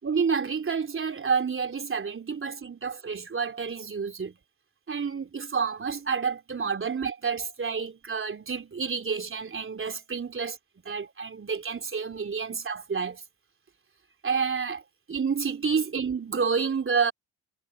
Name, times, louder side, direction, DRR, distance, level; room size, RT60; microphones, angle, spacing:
voice 1, 0.0-4.4 4.9-10.6 10.9-13.2 14.2-14.8 15.1-17.1, right 5 dB, 25° right, 3.4 m, -29 dB
figure-of-eight pair, 50°, 47 cm